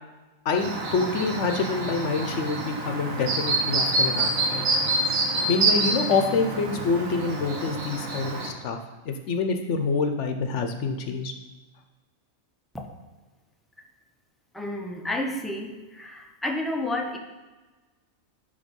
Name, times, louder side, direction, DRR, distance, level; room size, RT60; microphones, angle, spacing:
voice 1, 0.4-4.6 5.5-8.8 9.0-11.3, left 4 dB, 65° left, 5 dB, 0.9 m, -26 dB
Chirp tweet, 0.5-8.5, right 2 dB, 70° right, 1.5 m, -27 dB
voice 2, 14.5-17.2, left 1 dB, ahead, 1 dB, 0.4 m, -31 dB
10.5 x 3.5 x 5.2 m, 1.2 s
omnidirectional pair, 1.4 m